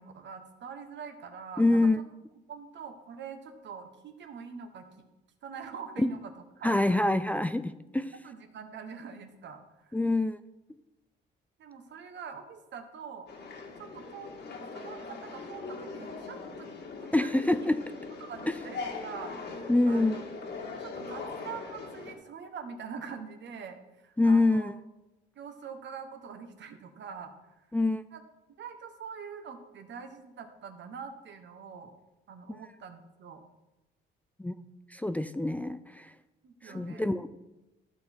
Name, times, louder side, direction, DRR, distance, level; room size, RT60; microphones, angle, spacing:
voice 1, 0.0-1.9 2.5-4.9 5.4-6.3 6.6-6.8 7.9-10.0 11.6-13.3 13.8-14.3 14.7-16.7 17.0-17.3 18.2-20.2 20.8-24.7 25.3-27.3 28.1-28.2 28.6-31.9 32.3-33.4 36.4-37.1, right 6 dB, 65° right, 7 dB, 1.4 m, -44 dB
voice 2, 1.6-2.0 6.0-6.1 6.6-8.1 9.9-10.4 17.1-18.0 18.5-18.6 19.7-20.2 24.2-24.7 27.7-28.0 32.5-32.6 34.4-34.5 34.9-36.1 36.6-37.3, left 2 dB, 5° left, 11 dB, 0.4 m, -26 dB
sound 1, 13.3-22.1, left 4 dB, 60° left, 1.9 m, -40 dB
14.0 x 6.1 x 4.5 m, 0.99 s
cardioid pair, 90°, 20 cm